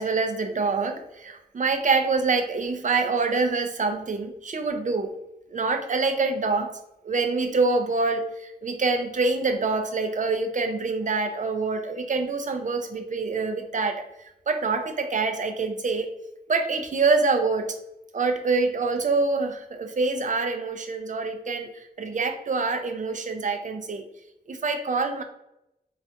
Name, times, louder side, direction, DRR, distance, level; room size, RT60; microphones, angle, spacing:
voice 1, 0.0-5.1 5.5-6.7 7.0-14.0 14.5-16.1 16.5-17.7 18.1-24.1 24.5-25.2, right 4 dB, 50° right, 6 dB, 0.4 m, -25 dB
3.3 x 2.4 x 2.7 m, 0.87 s
wide cardioid pair, 80°, 17 cm